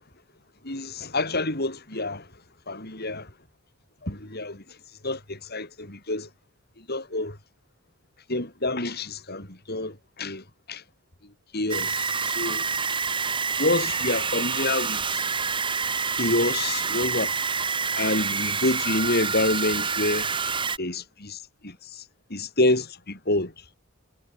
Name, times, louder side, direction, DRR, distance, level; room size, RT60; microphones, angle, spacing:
voice 1, 0.6-2.3 2.7-3.3 4.0-4.6 5.0-6.3 6.8-7.4 8.3-10.8 11.5-12.6 13.6-15.3 16.1-17.3 18.0-20.3 20.8-22.0 22.3-23.5, left 2 dB, 50° left, 7.2 m, -28 dB
sound 1, 11.7-20.8, right 5 dB, 25° right, 2.1 m, -27 dB
head